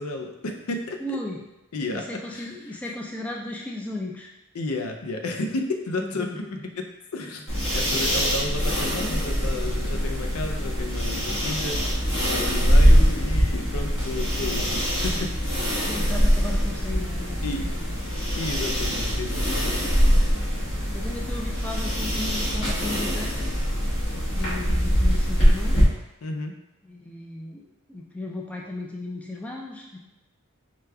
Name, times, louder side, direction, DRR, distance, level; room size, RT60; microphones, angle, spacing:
voice 1, 0.0-1.2 1.7-2.8 4.5-7.5 7.7-12.0 12.3-15.3 15.7-15.9 17.4-17.7 18.4-19.7 26.2-26.6, left 2 dB, 80° left, 4 dB, 0.5 m, -32 dB
voice 2, 1.0-1.4 1.9-4.3 6.0-6.7 7.7-7.8 15.8-17.9 20.9-23.4 24.1-25.8 26.8-30.0, left 2 dB, 5° left, -2 dB, 0.4 m, -35 dB
sound 1, 7.5-25.8, equal, 60° left, 1.3 m, -23 dB
5.0 x 2.3 x 3.3 m, 0.95 s
head